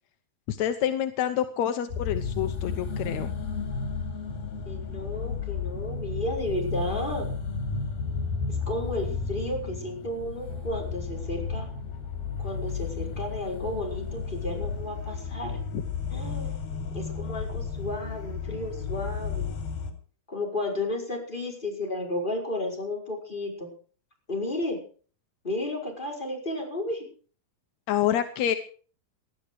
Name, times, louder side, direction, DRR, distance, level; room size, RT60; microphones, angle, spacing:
voice 1, 0.5-3.3 15.7-15.8 27.9-28.5, left 10 dB, 70° left, 8 dB, 1.8 m, -27 dB
sound 1, 1.9-19.9, left 5 dB, 85° left, 4.3 m, -33 dB
voice 2, 4.6-7.3 8.5-11.7 12.4-15.6 16.1-16.5 16.9-19.5 20.3-23.7 24.3-24.8 25.4-27.1, left 1 dB, 15° left, -1 dB, 5.1 m, -33 dB
19.0 x 12.0 x 4.8 m, 0.42 s
omnidirectional pair, 4.2 m